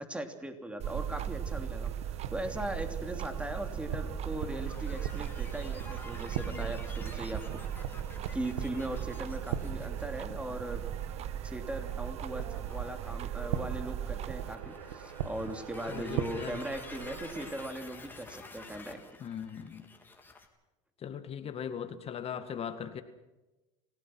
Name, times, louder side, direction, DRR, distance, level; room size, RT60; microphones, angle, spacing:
voice 1, 0.0-1.9 2.3-7.6 8.3-10.8 11.4-19.0, right 1 dB, 5° right, 3.1 m, -39 dB
sound 1, 0.8-14.6, right 10 dB, 40° right, 0.8 m, -38 dB
sound 2, 0.8-17.7, right 8 dB, 90° right, 1.7 m, -41 dB
sound 3, 2.3-20.5, left 3 dB, 10° left, 3.7 m, -51 dB
voice 2, 15.9-16.6 19.2-19.9 21.0-23.0, left 8 dB, 35° left, 1.9 m, -39 dB
27.5 x 17.5 x 6.2 m
supercardioid pair, 110°, 17 cm